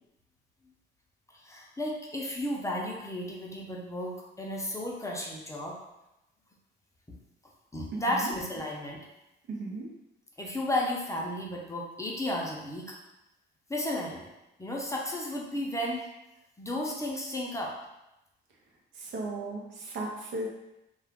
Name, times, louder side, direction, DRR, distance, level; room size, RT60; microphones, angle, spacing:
voice 1, 1.3-5.8 7.1-7.2 7.7-9.0 10.4-13.0 13.7-14.3 14.6-16.1 16.6-17.8, left 1 dB, 15° left, -2 dB, 0.6 m, -33 dB
voice 2, 7.9-8.3 9.5-9.9 19.0-20.5, right 2 dB, 75° right, -1 dB, 0.7 m, -36 dB
2.3 x 2.3 x 3.5 m, 0.92 s
cardioid pair, 90°, 20 cm